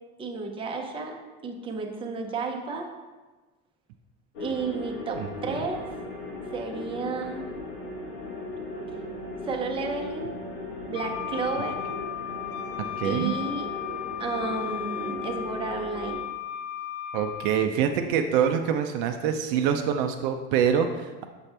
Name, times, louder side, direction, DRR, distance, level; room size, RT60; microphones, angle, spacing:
voice 1, 0.2-1.2 1.4-2.9 4.4-6.0 6.5-7.5 9.5-10.3 10.9-11.8 13.0-13.7 14.2-16.2, right 4 dB, 20° right, 2 dB, 0.7 m, -32 dB
sound 1, 4.3-16.1, left 1 dB, 80° left, 1.4 m, -37 dB
voice 2, 5.2-5.6 13.0-13.3 17.1-21.3, right 8 dB, 65° right, 6 dB, 0.5 m, -25 dB
Wind instrument woodwind instrument, 10.9-17.7, left 11 dB, 50° left, 0.5 m, -35 dB
7.0 x 4.2 x 3.3 m, 1.2 s
supercardioid pair, 130°, 29 cm